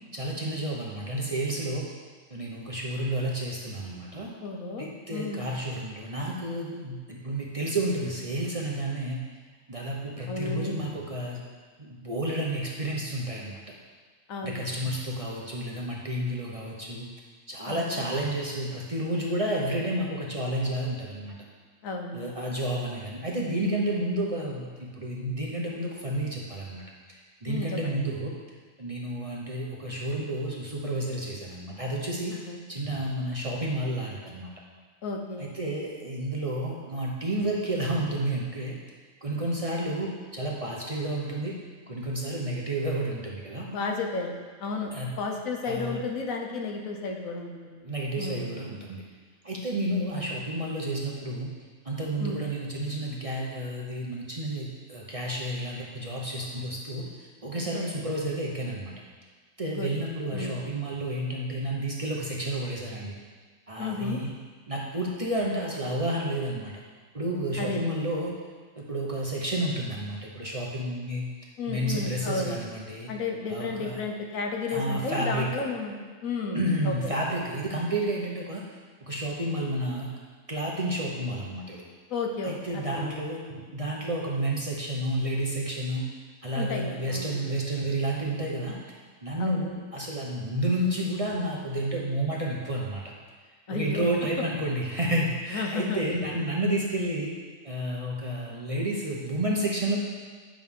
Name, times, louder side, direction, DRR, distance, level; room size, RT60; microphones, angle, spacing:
voice 1, 0.1-1.9 2.3-4.3 4.8-9.2 9.7-11.4 11.8-13.6 14.4-17.1 17.5-21.3 22.1-28.3 28.8-32.4 32.7-34.5 35.4-38.7 39.2-41.6 41.9-43.7 44.9-45.1 45.6-46.0 47.8-49.0 49.4-51.5 51.8-58.9 59.6-63.1 63.7-64.3 64.7-66.7 67.1-68.3 68.8-71.2 71.7-73.1 73.5-74.0 74.7-75.6 76.5-78.6 79.0-80.1 80.5-81.8 82.4-86.1 86.4-88.8 89.2-93.0 93.7-97.3 97.6-100.0, right 1 dB, 30° right, -3 dB, 0.7 m, -31 dB
voice 2, 4.4-5.4 10.3-10.7 14.3-14.6 17.7-18.0 21.8-22.2 27.5-28.1 32.3-32.6 35.0-35.5 43.7-47.8 48.2-48.5 52.2-52.4 57.7-57.8 59.7-59.9 60.3-60.6 63.8-64.2 67.6-68.1 71.6-72.6 73.1-77.1 82.1-83.2 86.5-87.4 89.4-89.6 93.7-94.1 95.5-96.0, left 3 dB, 80° left, 2 dB, 1.3 m, -33 dB
8.8 x 6.2 x 3.6 m, 1.5 s
omnidirectional pair, 1.4 m